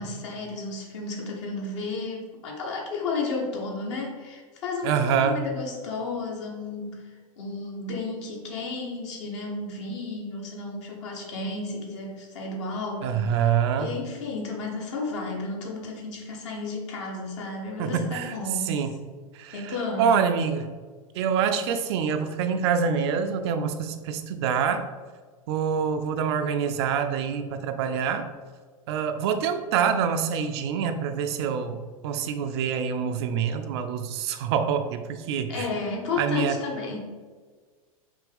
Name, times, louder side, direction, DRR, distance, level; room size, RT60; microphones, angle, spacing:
voice 1, 0.0-18.7 19.5-20.2 35.5-37.0, left 3 dB, 55° left, -1 dB, 1.2 m, -33 dB
voice 2, 4.8-5.4 13.0-13.9 17.8-18.3 18.7-18.9 19.3-19.6 20.0-20.6 21.2-24.8 25.5-28.3 28.9-35.6 36.2-36.6, right 7 dB, 50° right, 8 dB, 0.4 m, -26 dB
5.0 x 2.7 x 3.5 m, 1.5 s
figure-of-eight pair, 95°, 18 cm